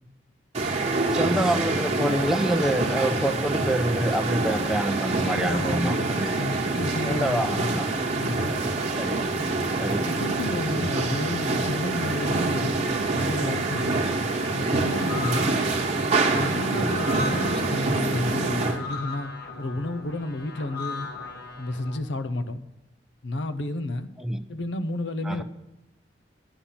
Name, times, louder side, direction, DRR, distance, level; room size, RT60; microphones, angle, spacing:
sound 1, 0.5-18.8, right 3 dB, 40° right, 1.3 m, -26 dB
voice 1, 0.8-6.3 7.1-7.9 9.0-9.3 9.8-10.1 15.2-15.5 16.7-17.0 24.2-24.4 25.2-25.4, right 1 dB, 5° right, 0.6 m, -27 dB
voice 2, 5.1-7.8 8.2-8.6 10.0-12.9 13.2-14.1 14.5-15.6 16.3-19.3 19.6-21.1 21.6-22.6 23.2-24.1 24.5-25.4, left 1 dB, 85° left, 0.8 m, -31 dB
sound 2, 14.9-22.0, left 3 dB, 65° left, 1.8 m, -38 dB
10.0 x 5.6 x 8.6 m
head